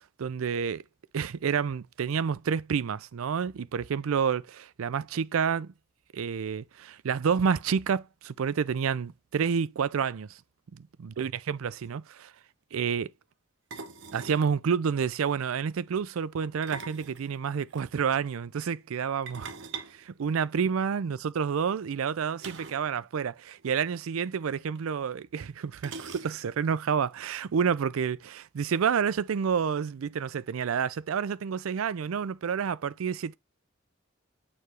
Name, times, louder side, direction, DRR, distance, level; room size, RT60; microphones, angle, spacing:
voice 1, 0.2-0.8 1.1-5.7 6.1-10.4 10.7-12.3 12.7-13.1 14.1-19.5 19.9-33.4, right 6 dB, 90° right, 0.4 m, -29 dB
sound 1, 11.4-11.5 11.7-11.9 13.7-14.5 16.4-17.8 19.3-20.9 22.4-22.9 23.2-23.3 23.6-23.7 24.8-24.9 25.8-26.6, right 5 dB, 60° right, 0.9 m, -42 dB
6.8 x 3.2 x 4.6 m
head